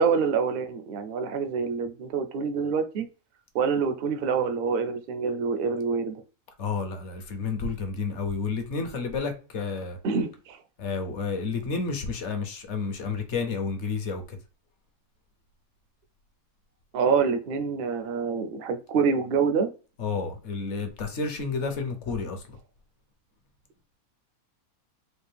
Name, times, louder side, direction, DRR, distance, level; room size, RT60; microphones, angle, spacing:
voice 1, 0.0-3.1 3.5-6.2 10.0-10.6 16.9-19.7, right 5 dB, 60° right, 0.6 m, -26 dB
voice 2, 6.6-10.0 10.8-14.4 20.0-22.6, left 4 dB, 60° left, 1.0 m, -31 dB
4.4 x 2.5 x 3.3 m
omnidirectional pair, 1.5 m